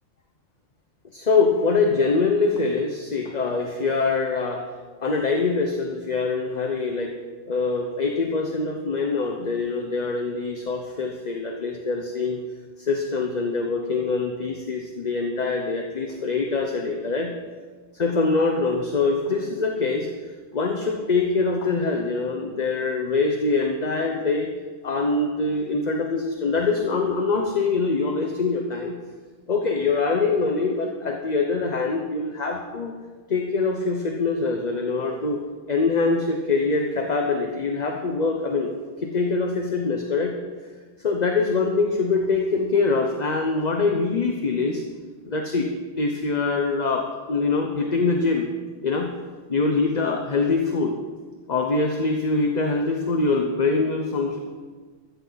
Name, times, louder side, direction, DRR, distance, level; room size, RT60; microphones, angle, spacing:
voice 1, 1.1-4.6 5.0-7.1 7.4-12.4 12.8-17.3 18.0-20.1 20.5-24.5 24.8-29.0 29.5-32.9 33.3-35.4 35.7-38.7 39.0-40.3 41.0-44.8 45.2-45.7 46.0-48.5 48.8-49.1 49.5-51.0 51.5-54.4, left 4 dB, 40° left, 3 dB, 1.0 m, -24 dB
14.5 x 14.0 x 4.1 m, 1.4 s
omnidirectional pair, 1.2 m